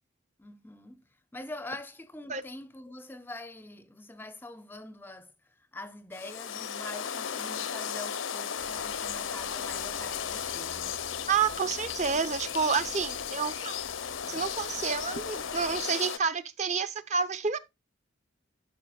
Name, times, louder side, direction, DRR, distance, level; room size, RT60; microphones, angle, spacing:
voice 1, 0.4-1.0 1.3-5.3 5.7-10.9, left 2 dB, 10° left, 0.5 m, -44 dB
sound 1, 6.1-16.2, left 8 dB, 75° left, 0.7 m, -35 dB
sound 2, 8.6-15.8, equal, 55° right, 2.5 m, -53 dB
voice 2, 11.3-13.8 14.3-17.6, right 5 dB, 35° right, 0.6 m, -29 dB
11.5 x 5.6 x 2.3 m
head